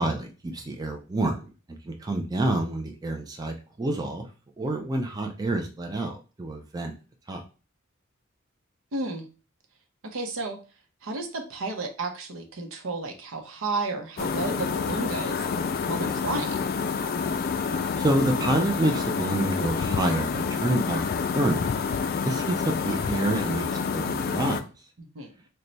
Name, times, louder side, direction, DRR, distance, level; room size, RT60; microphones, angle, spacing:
voice 1, 0.0-1.4 1.8-4.3 4.6-6.9 7.3-7.4 18.0-21.0 21.3-21.6 22.1-24.6, right 1 dB, 20° right, 3 dB, 0.4 m, -28 dB
voice 2, 8.9-9.3 10.0-10.6 11.0-15.5 15.9-16.7 25.0-25.3, right 3 dB, 80° right, 4 dB, 0.7 m, -32 dB
sound 1, 14.2-24.6, left 5 dB, 50° left, 0.3 m, -28 dB
3.1 x 2.2 x 3.9 m, 0.34 s
head